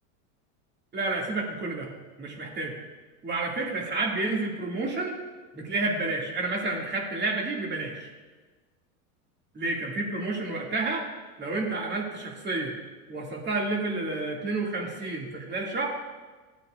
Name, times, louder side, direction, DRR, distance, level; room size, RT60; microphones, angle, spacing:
voice 1, 0.9-1.9 2.2-2.8 3.2-5.2 5.5-8.1 9.5-11.1 11.4-12.8 13.1-15.9, right 2 dB, 25° right, -1 dB, 2.2 m, -30 dB
16.0 x 8.9 x 2.5 m, 1.3 s
supercardioid pair, 115°, 43 cm